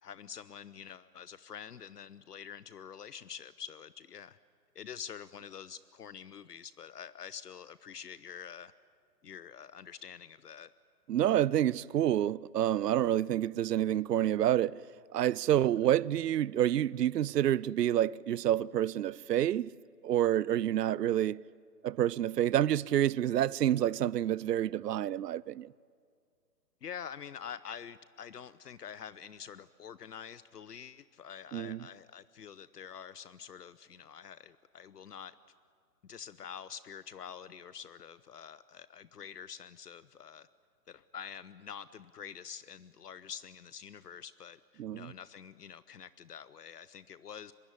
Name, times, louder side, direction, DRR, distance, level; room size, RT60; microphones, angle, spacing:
voice 1, 0.0-4.4 4.7-8.7 9.2-10.7 26.8-35.3 36.0-40.5 40.9-47.5, left 8 dB, 70° left, 0.8 m, -46 dB
voice 2, 11.1-14.8 15.1-19.7 20.0-21.4 21.8-25.7 31.5-31.8 44.8-45.1, right 11 dB, 75° right, 0.6 m, -28 dB
24.0 x 22.0 x 9.8 m
hypercardioid pair, 155°, 49 cm